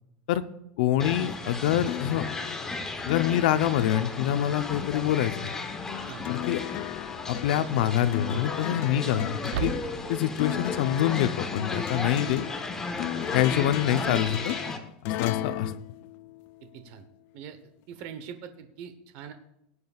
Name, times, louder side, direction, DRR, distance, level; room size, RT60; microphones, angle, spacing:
voice 1, 0.8-2.2 3.1-5.5 6.3-6.6 7.3-9.7 10.1-12.5 13.3-14.5 15.0-15.7, left 11 dB, 75° left, 11 dB, 0.7 m, -26 dB
sound 1, 1.0-14.8, left 3 dB, 10° left, 1.0 m, -35 dB
sound 2, 1.8-16.8 18.0-18.1, left 15 dB, 45° left, 0.4 m, -37 dB
sound 3, 4.8-4.9 6.7-7.1 7.5-7.6 9.4-10.3, right 9 dB, 90° right, 0.8 m, -35 dB
voice 2, 16.7-17.1 17.3-17.6 17.9-19.3, right 8 dB, 55° right, 8 dB, 0.9 m, -42 dB
18.5 x 9.6 x 2.4 m, 0.79 s
supercardioid pair, 155°, 5 cm